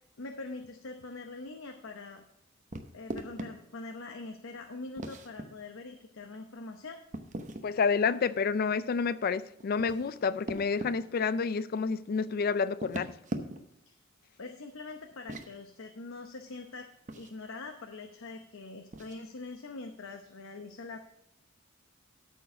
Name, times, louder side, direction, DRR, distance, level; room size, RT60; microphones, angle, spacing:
voice 1, 0.0-2.2 2.9-7.0 13.9-14.0 14.4-16.9 17.1-21.0, left 3 dB, 80° left, 0.8 m, -43 dB
sound 1, 2.7-3.5 5.0-5.5 7.1-7.7 9.6-10.9 12.7-13.8 15.1-15.5 17.1-17.3 18.9-19.2, right 1 dB, 40° right, 0.9 m, -39 dB
voice 2, 7.6-13.1, left 5 dB, 50° left, 0.4 m, -29 dB
13.0 x 4.6 x 6.1 m
head